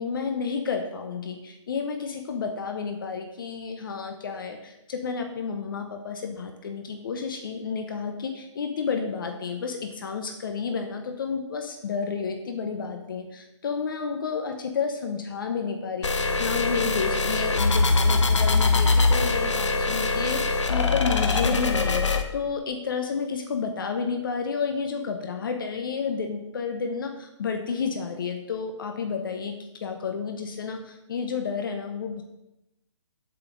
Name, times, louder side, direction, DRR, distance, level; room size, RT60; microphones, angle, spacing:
voice 1, 0.0-32.2, left 5 dB, 45° left, 5 dB, 0.9 m, -31 dB
sound 1, 16.0-22.2, left 3 dB, 70° left, 1.1 m, -22 dB
7.8 x 5.6 x 6.4 m, 0.90 s
hypercardioid pair, 155°, 16 cm